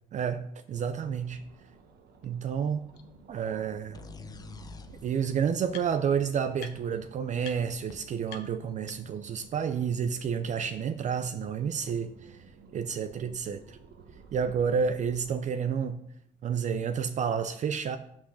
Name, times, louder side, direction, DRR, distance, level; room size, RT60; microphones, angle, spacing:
voice 1, 0.1-0.4 0.7-1.4 2.2-2.8 3.3-4.0 5.0-12.4 12.7-13.8 14.3-16.0 16.4-18.0, right 7 dB, 45° right, 10 dB, 0.5 m, -30 dB
sound 1, 0.7-15.3, right 4 dB, 70° right, 1.2 m, -54 dB
sound 2, 2.2-2.3 2.9-3.0 4.3-4.4 4.7-6.2 6.6-7.0 7.4-7.6 7.9-8.0 8.3-9.3, left 10 dB, 80° left, 0.9 m, -48 dB
sound 3, 3.9-7.6, left 4 dB, 20° left, 0.6 m, -49 dB
6.1 x 6.0 x 6.3 m, 0.73 s
cardioid pair, 110°, 17 cm